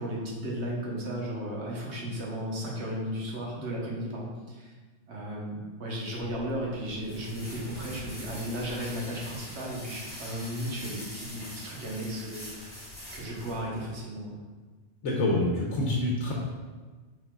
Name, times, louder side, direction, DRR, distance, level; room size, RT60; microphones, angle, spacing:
voice 1, 0.0-4.7 5.1-12.5 13.1-14.4, equal, 65° right, -3 dB, 1.3 m, -35 dB
sound 1, 6.2-14.0, equal, 20° left, 1.5 m, -44 dB
voice 2, 15.0-16.3, left 1 dB, 80° left, -3 dB, 1.0 m, -26 dB
6.0 x 3.8 x 2.3 m, 1.4 s
omnidirectional pair, 1.2 m